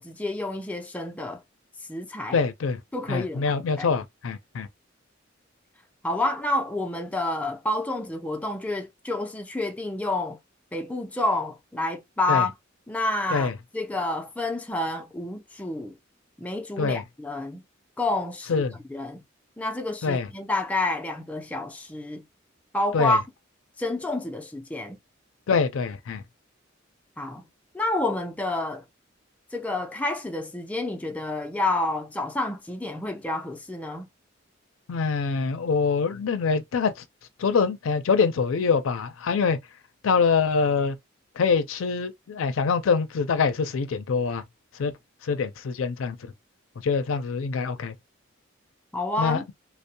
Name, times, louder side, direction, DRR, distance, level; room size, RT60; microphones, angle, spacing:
voice 1, 0.0-1.4 1.9-2.4 2.9-3.9 6.0-10.4 10.7-12.5 12.9-16.0 16.4-17.6 18.0-18.6 18.9-19.2 19.6-22.3 22.7-23.2 23.8-25.0 27.2-27.4 27.7-28.8 29.5-34.1 48.9-49.5, left 2 dB, 5° left, 0.3 m, -29 dB
voice 2, 2.3-2.8 3.1-4.7 12.3-12.5 13.3-13.5 16.8-17.0 18.5-18.7 20.0-20.3 22.9-23.2 25.5-26.2 34.9-36.9 37.4-39.6 40.0-41.0 41.4-44.4 44.8-44.9 45.2-46.3 46.8-47.9 49.2-49.5, left 5 dB, 90° left, 0.4 m, -24 dB
2.6 x 2.0 x 2.7 m
head